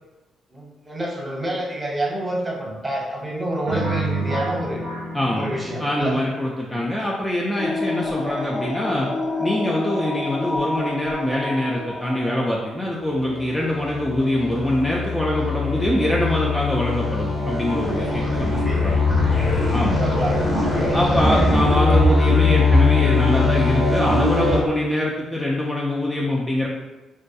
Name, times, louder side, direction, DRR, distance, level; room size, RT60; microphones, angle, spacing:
voice 1, 0.5-4.9 5.4-6.2 6.7-6.8 18.5-18.8 19.9-20.9 21.3-21.5, right 1 dB, 20° right, -3 dB, 0.9 m, -28 dB
sound 1, 3.7-6.5, right 2 dB, 90° right, 0.4 m, -29 dB
voice 2, 5.1-5.5 5.8-9.1 9.4-19.0 19.7-20.0 20.9-26.7, left 1 dB, 10° left, -4 dB, 0.4 m, -23 dB
sound 2, 7.6-12.7, left 2 dB, 70° left, 0.9 m, -28 dB
sound 3, 13.2-24.6, left 3 dB, 35° left, 0.8 m, -21 dB
2.2 x 2.2 x 2.7 m, 1.1 s
hypercardioid pair, 50°, 0 cm